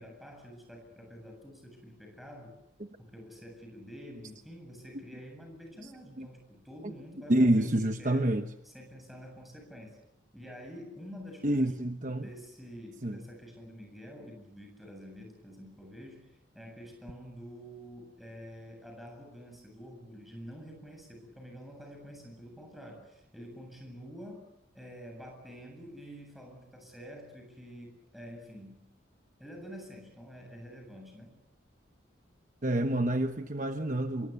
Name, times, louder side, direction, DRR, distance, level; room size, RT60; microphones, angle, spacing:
voice 1, 0.0-2.6 3.0-7.7 8.0-8.3 8.6-10.0 10.3-11.7 12.2-24.5 24.7-28.9 29.4-31.4, equal, ahead, 3 dB, 7.8 m, -48 dB
voice 2, 7.3-8.4 11.4-12.3 13.0-13.2 32.6-34.3, right 1 dB, 40° right, 7 dB, 1.1 m, -27 dB
26.5 x 23.5 x 8.3 m, 0.87 s
head